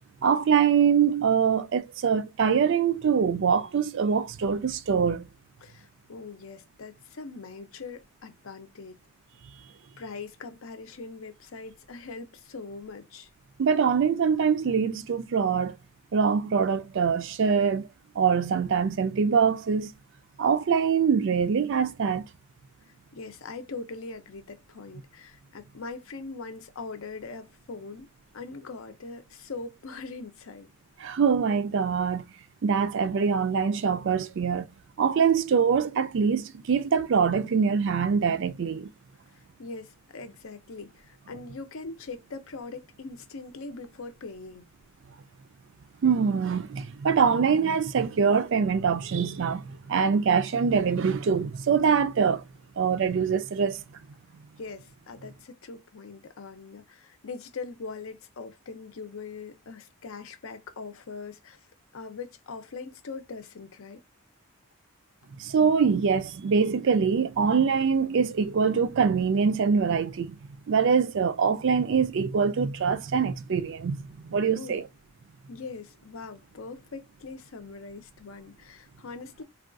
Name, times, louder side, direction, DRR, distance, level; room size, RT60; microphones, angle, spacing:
voice 1, 0.2-5.3 13.6-15.8 16.1-17.9 18.2-19.9 20.4-22.3 31.0-32.2 32.6-34.7 35.0-38.9 46.0-52.4 52.8-53.8 65.4-70.4 70.7-74.8, right 6 dB, 55° right, 0.4 m, -24 dB
voice 2, 5.6-9.0 10.0-13.3 23.1-28.1 28.3-30.7 39.3-44.7 54.6-61.6 61.9-64.0 74.5-74.8 75.5-79.4, left 4 dB, 65° left, 0.6 m, -41 dB
3.5 x 2.3 x 2.5 m
head